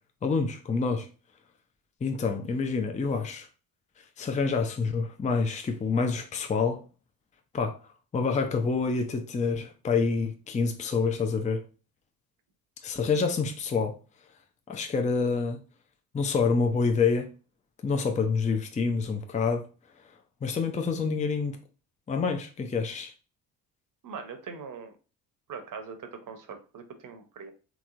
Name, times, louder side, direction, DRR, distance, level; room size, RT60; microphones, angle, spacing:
voice 1, 0.2-1.1 2.0-3.5 4.2-6.8 7.5-7.8 8.1-11.6 12.8-14.0 14.7-15.6 16.1-17.3 17.8-19.7 20.4-21.6 22.1-23.1, left 4 dB, 15° left, 0.5 m, -27 dB
voice 2, 24.0-25.0 25.5-27.5, right 5 dB, 40° right, 0.9 m, -41 dB
3.4 x 3.0 x 2.5 m
hypercardioid pair, 55°, 49 cm